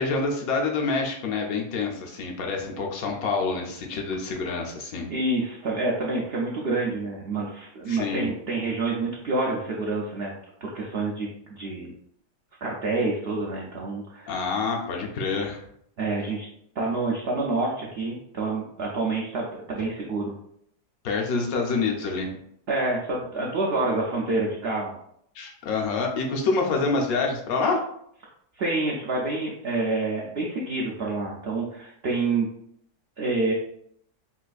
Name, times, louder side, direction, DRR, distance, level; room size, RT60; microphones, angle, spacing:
voice 1, 0.0-5.1 7.9-8.3 14.3-15.6 21.0-22.3 25.3-27.8, left 4 dB, 70° left, 1 dB, 1.0 m, -27 dB
voice 2, 5.1-10.3 10.6-11.9 12.6-14.3 16.0-16.5 16.8-20.3 22.7-24.9 28.6-32.5 33.2-33.5, right 3 dB, 75° right, -3 dB, 0.5 m, -27 dB
3.9 x 2.5 x 2.3 m, 0.71 s
omnidirectional pair, 1.7 m